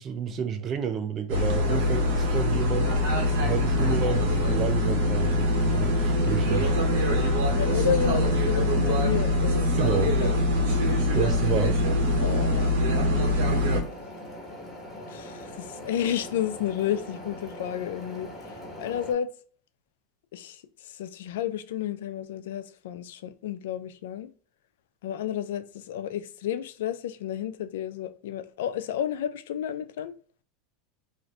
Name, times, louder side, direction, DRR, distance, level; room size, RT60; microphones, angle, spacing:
voice 1, 0.0-2.9 3.4-6.7 9.8-10.1 11.1-11.8, right 7 dB, 35° right, 0.5 m, -30 dB
sound 1, 1.3-13.8, left 1 dB, 75° right, 0.9 m, -23 dB
voice 2, 7.5-10.8 12.2-12.8 15.1-19.3 20.3-24.3 25.0-30.1, left 10 dB, 80° left, 0.3 m, -32 dB
sound 2, 13.4-19.1, left 1 dB, 20° left, 1.3 m, -41 dB
2.5 x 2.5 x 3.1 m
supercardioid pair, 110°, 0 cm